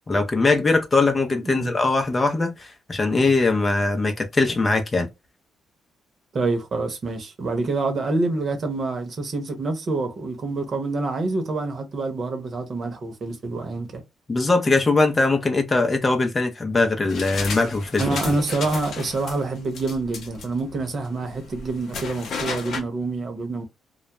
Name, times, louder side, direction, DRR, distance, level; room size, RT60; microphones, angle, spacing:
voice 1, 0.1-5.1 14.3-18.0, left 3 dB, 30° left, 0.6 m, -21 dB
voice 2, 1.4-1.7 6.3-14.0 18.0-23.6, right 3 dB, 50° right, 0.8 m, -27 dB
sound 1, 17.1-22.8, left 5 dB, 65° left, 0.7 m, -34 dB
2.2 x 2.1 x 2.9 m
cardioid pair, 90°, 0 cm